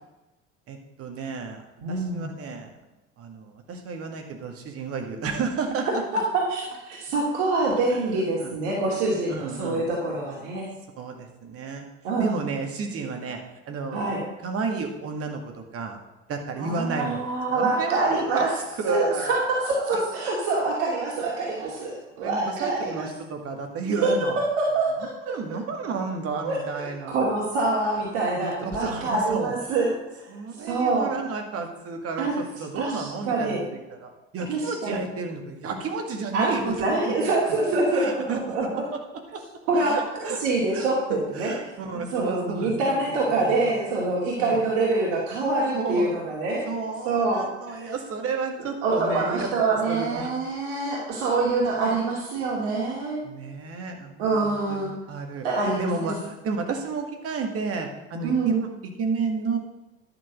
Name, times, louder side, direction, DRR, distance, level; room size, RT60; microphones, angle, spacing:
voice 1, 0.7-1.6 1.9-2.7 3.2-5.9 7.9-8.0 8.4-8.6 9.3-9.8 11.0-11.9 12.2-13.4 13.7-14.1 14.4-16.0 16.3-17.2 17.5-18.5 18.8-20.0 22.2-24.4 25.0-27.3 28.4-29.5 30.3-33.6 33.9-37.2 37.9-39.0 39.3-39.4 39.7-40.4 40.7-43.7 44.4-44.6 45.7-46.1 46.7-49.5 49.9-50.3 53.2-59.6, right 4 dB, 40° right, 4 dB, 2.0 m, -32 dB
voice 2, 1.8-2.3 5.9-10.7 12.0-12.3 13.9-14.2 16.6-18.5 18.9-23.1 24.6-24.9 26.4-30.3 30.6-31.1 32.2-32.3 32.8-33.6 34.5-35.0 36.3-38.8 39.7-41.6 42.1-46.7 47.0-47.9 48.8-53.2 54.2-54.9 55.4-56.1 58.2-58.6, right 3 dB, 55° right, -3 dB, 2.4 m, -25 dB
11.0 x 6.2 x 6.1 m, 1.0 s
figure-of-eight pair, 65°, 37 cm